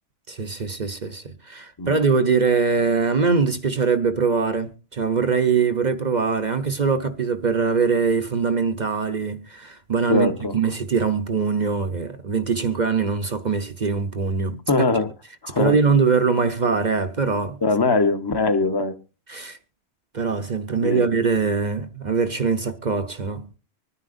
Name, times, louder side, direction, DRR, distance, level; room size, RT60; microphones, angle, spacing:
voice 1, 0.3-14.6 15.6-17.6 19.3-19.6 20.1-23.5, right 5 dB, 45° right, 0.9 m, -22 dB
voice 2, 10.1-10.5 14.7-15.1 15.4-15.8 17.6-19.0 20.8-21.1, left 3 dB, 25° left, 0.9 m, -21 dB
25.0 x 9.8 x 2.6 m
omnidirectional pair, 1.1 m